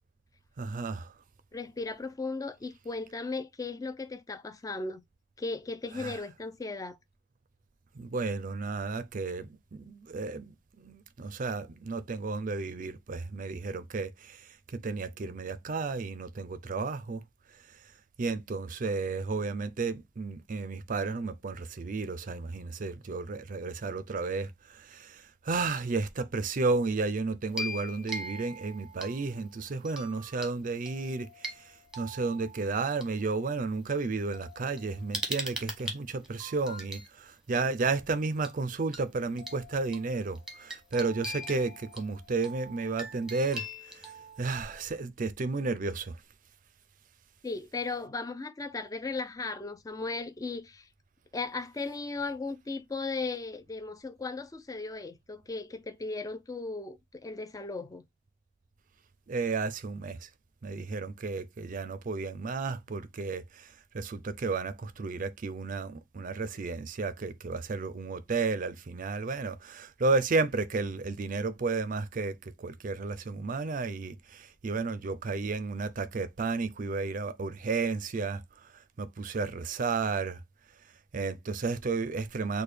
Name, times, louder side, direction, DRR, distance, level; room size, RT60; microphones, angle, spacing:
voice 1, 0.6-1.1 6.0-6.2 8.0-14.4 14.8-17.2 18.2-31.3 32.0-43.7 44.4-46.1 59.3-60.3 60.6-63.7 63.9-78.4 79.0-80.4 81.1-82.6, right 3 dB, 45° right, 0.5 m, -32 dB
voice 2, 1.5-5.0 5.4-7.0 47.4-50.9 51.3-58.0, left 3 dB, 20° left, 0.4 m, -36 dB
sound 1, 27.5-29.4 29.8-30.5 30.9-33.0 33.9-34.0 34.3-37.1 38.4-38.6 38.9-39.0 39.4-44.8, equal, 5° right, 1.2 m, -41 dB
6.4 x 2.2 x 3.3 m
head